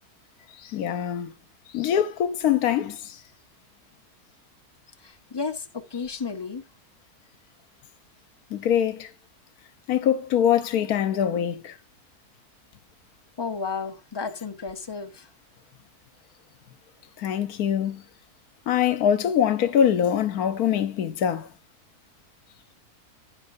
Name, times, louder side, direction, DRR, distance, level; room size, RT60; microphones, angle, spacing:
voice 1, 0.6-1.3 1.7-3.2 8.5-9.1 9.9-11.8 17.2-18.0 18.7-21.5, left 9 dB, 75° left, 1.3 m, -23 dB
voice 2, 5.0-6.6 13.4-15.3, left 5 dB, 35° left, 0.4 m, -33 dB
16.0 x 5.7 x 2.6 m
omnidirectional pair, 1.6 m